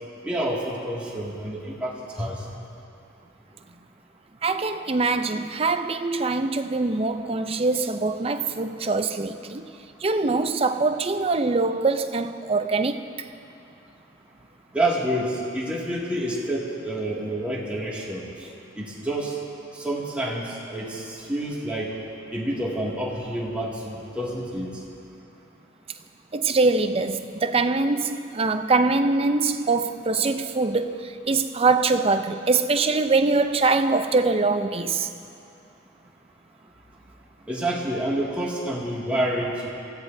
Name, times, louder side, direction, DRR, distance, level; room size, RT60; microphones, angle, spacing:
voice 1, 0.2-2.4 14.7-18.5 18.7-19.4 19.7-21.9 22.3-24.7 37.5-39.7, right 1 dB, 5° right, 2.2 m, -28 dB
voice 2, 4.4-9.6 10.0-13.0 26.3-35.1, right 3 dB, 30° right, 0.5 m, -23 dB
27.5 x 15.5 x 2.7 m
head